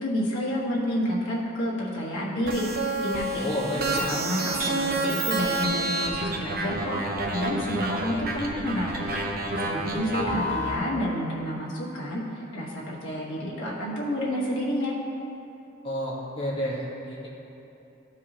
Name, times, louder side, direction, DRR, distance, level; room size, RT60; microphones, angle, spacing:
voice 1, 0.0-2.6 3.0-3.5 4.0-6.9 7.3-9.2 9.6-12.2 12.5-14.9, equal, 85° left, -6 dB, 1.5 m, -29 dB
sound 1, 2.5-10.8, right 2 dB, 50° right, 0.8 m, -29 dB
voice 2, 3.4-4.1 15.8-17.3, left 1 dB, 25° left, -7 dB, 1.5 m, -30 dB
13.0 x 4.8 x 3.0 m, 2.9 s
head